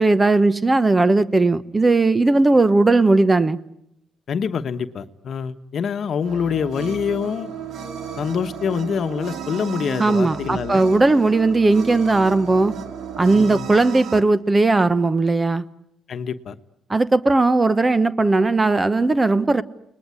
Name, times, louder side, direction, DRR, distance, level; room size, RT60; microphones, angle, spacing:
voice 1, 0.0-3.6 10.0-12.7 13.2-15.6 16.9-19.6, right 3 dB, 20° right, 15 dB, 1.0 m, -17 dB
voice 2, 4.3-7.5 8.2-10.9 13.3-13.7 16.1-16.5, left 7 dB, 60° left, 10 dB, 1.1 m, -25 dB
sound 1, 6.2-14.2, right 7 dB, 70° right, 1.5 m, -34 dB
30.0 x 20.0 x 9.8 m, 0.82 s
cardioid pair, 90°, 0 cm